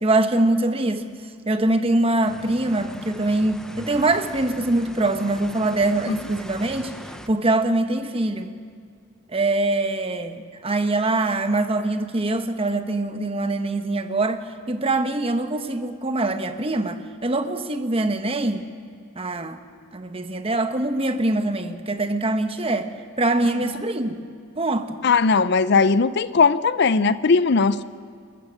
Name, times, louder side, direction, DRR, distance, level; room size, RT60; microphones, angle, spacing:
voice 1, 0.0-1.1 1.5-8.5 9.3-18.7 19.1-19.6 19.9-24.2 24.6-25.0, right 2 dB, 25° right, 1.0 m, -23 dB
sound 1, 2.2-7.3, equal, 5° left, 0.7 m, -40 dB
voice 2, 25.0-27.8, left 4 dB, 55° left, 0.5 m, -18 dB
30.0 x 14.0 x 6.4 m
head